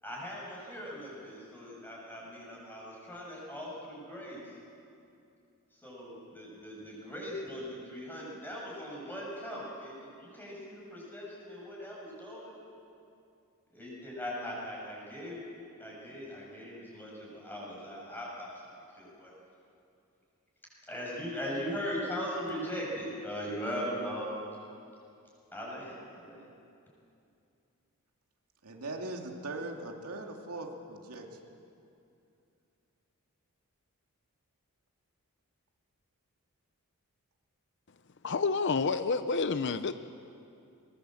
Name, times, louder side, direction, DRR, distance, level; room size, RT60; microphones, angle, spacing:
voice 1, 0.0-4.4 5.8-12.5 13.7-15.4 15.8-18.6 18.9-19.3 20.9-24.5 25.5-26.4, equal, 10° left, -4 dB, 7.1 m, -39 dB
voice 2, 28.6-31.5 39.6-39.9, right 2 dB, 90° right, 2 dB, 2.5 m, -40 dB
voice 3, 38.2-39.9, left 4 dB, 55° left, 11 dB, 0.6 m, -29 dB
22.5 x 21.0 x 7.8 m, 2.6 s
head